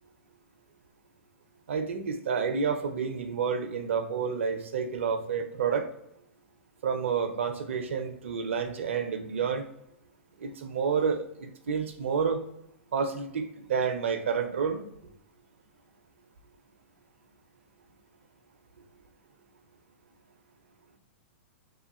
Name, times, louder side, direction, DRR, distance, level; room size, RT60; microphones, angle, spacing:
voice 1, 1.7-5.9 6.8-9.6 10.4-12.4 12.9-14.8, right 6 dB, 75° right, 6 dB, 0.5 m, -29 dB
3.0 x 2.2 x 4.1 m, 0.80 s
hypercardioid pair, 110°, 7 cm